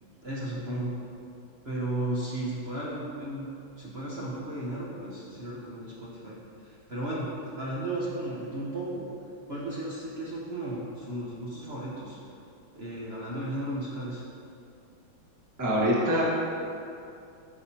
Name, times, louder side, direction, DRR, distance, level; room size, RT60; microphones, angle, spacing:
voice 1, 0.0-0.9 1.6-7.3 7.6-9.1 9.5-12.2 12.7-14.2, right 1 dB, 50° right, -6 dB, 0.7 m, -35 dB
voice 2, 15.6-16.2, equal, 10° right, -7 dB, 1.0 m, -24 dB
9.8 x 6.4 x 2.8 m, 2.6 s
omnidirectional pair, 2.3 m